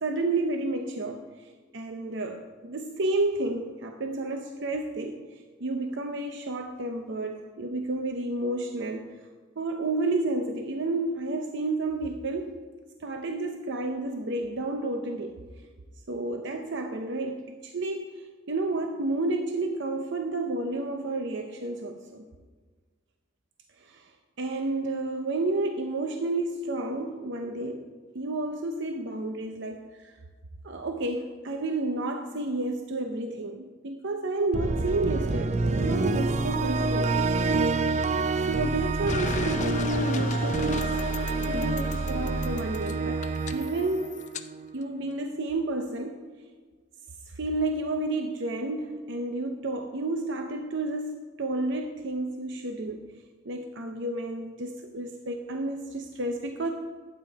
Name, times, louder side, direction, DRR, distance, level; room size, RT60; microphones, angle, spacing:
voice 1, 0.0-5.2 5.6-9.1 9.6-12.6 13.0-15.4 16.1-22.3 23.8-24.1 24.4-30.2 30.6-37.1 38.3-43.2 43.5-44.3 44.7-46.2 47.3-53.0 53.4-56.7, right 2 dB, 65° right, 5 dB, 0.7 m, -31 dB
sound 1, 34.5-44.7, right 3 dB, 35° right, 0.4 m, -27 dB
sound 2, 39.1-44.5, left 5 dB, 40° left, 0.5 m, -36 dB
12.0 x 8.9 x 4.7 m, 1.4 s
head